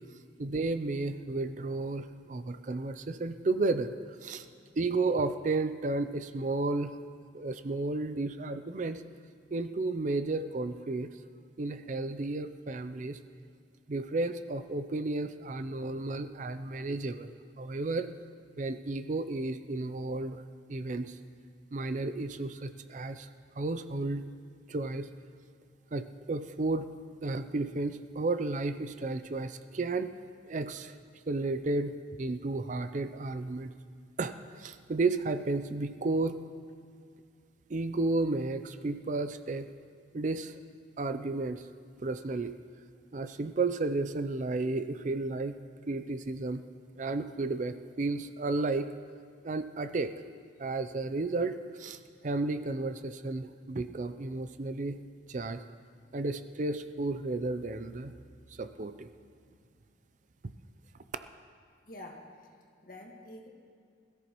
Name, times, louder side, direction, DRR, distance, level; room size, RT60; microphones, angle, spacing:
voice 1, 0.4-3.9 4.2-4.5 4.8-6.9 7.3-9.0 9.5-11.1 11.6-13.2 13.9-17.3 17.6-18.1 18.6-20.4 20.7-21.2 21.7-23.3 23.6-24.3 24.7-25.1 25.9-26.9 27.2-30.1 30.4-31.0 31.3-33.7 34.2-36.4 37.7-39.7 40.1-40.6 41.0-41.6 42.0-42.5 43.1-45.6 45.9-46.6 47.0-48.9 49.4-50.1 50.6-55.0 55.3-55.6 56.1-58.1 58.5-59.1, right 3 dB, 40° right, 10 dB, 0.5 m, -32 dB
voice 2, 61.9-62.3 62.8-63.5, left 1 dB, 50° left, 0 dB, 1.7 m, -46 dB
21.0 x 14.0 x 3.1 m, 2.2 s
head